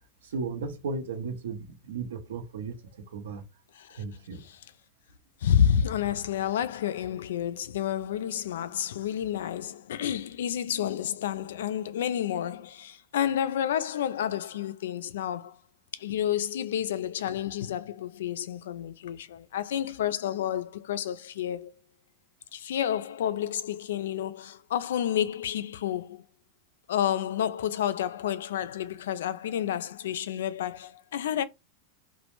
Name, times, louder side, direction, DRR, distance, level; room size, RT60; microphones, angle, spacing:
voice 1, 0.2-2.8 3.1-3.4 3.9-4.4, right 4 dB, 85° right, 0.7 m, -35 dB
voice 2, 5.4-15.6 15.9-21.7 22.5-26.2 26.9-31.4, left 10 dB, 80° left, 0.3 m, -30 dB
2.1 x 2.1 x 3.0 m
hypercardioid pair, 125°, 0 cm